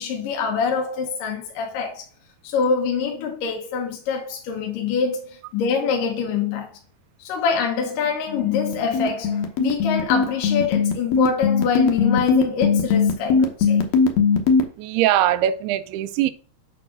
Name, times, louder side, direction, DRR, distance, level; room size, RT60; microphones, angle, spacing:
voice 1, 0.0-2.0 2.4-6.7 7.2-13.9, left 6 dB, 70° left, 2.4 m, -25 dB
sound 1, 8.3-14.6, left 5 dB, 85° left, 1.5 m, -19 dB
voice 2, 14.8-16.3, right 12 dB, 85° right, 2.5 m, -21 dB
8.5 x 3.2 x 6.1 m
omnidirectional pair, 4.6 m